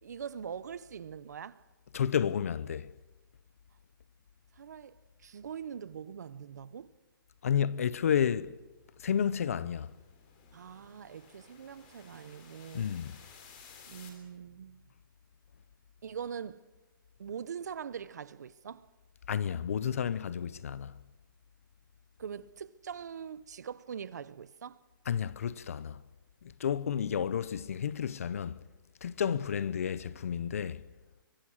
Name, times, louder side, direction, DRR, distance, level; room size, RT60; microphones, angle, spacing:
voice 1, 0.0-1.6 4.6-6.9 10.5-12.9 13.9-14.8 16.0-16.6 17.2-18.9 22.2-24.8 29.2-29.5, right 7 dB, 50° right, 0.8 m, -43 dB
voice 2, 1.9-2.9 7.4-8.5 9.0-9.9 12.7-13.2 19.3-20.9 25.1-26.0 26.6-28.6 29.0-30.8, left 8 dB, 40° left, 0.6 m, -31 dB
sound 1, 8.5-14.1, left 6 dB, 25° left, 3.6 m, -57 dB
25.0 x 24.0 x 6.4 m
hypercardioid pair, 180°, 12 cm